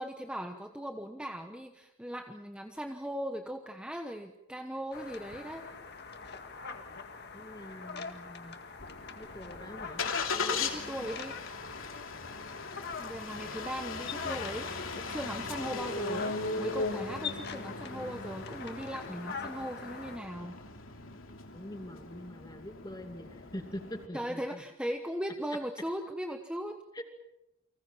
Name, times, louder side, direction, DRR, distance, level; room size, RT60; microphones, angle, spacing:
voice 1, 0.0-5.6 10.3-11.3 13.0-20.6 24.1-26.8, equal, 5° right, 4 dB, 1.1 m, -39 dB
sound 1, 4.9-20.2, left 5 dB, 50° left, 2.0 m, -44 dB
voice 2, 7.3-8.6 9.2-10.0 14.1-14.2 21.5-24.6 26.9-27.0, equal, 20° left, 5 dB, 2.5 m, -44 dB
Engine starting, 8.8-24.1, left 4 dB, 65° left, 3.0 m, -38 dB
30.0 x 25.0 x 5.8 m, 0.90 s
head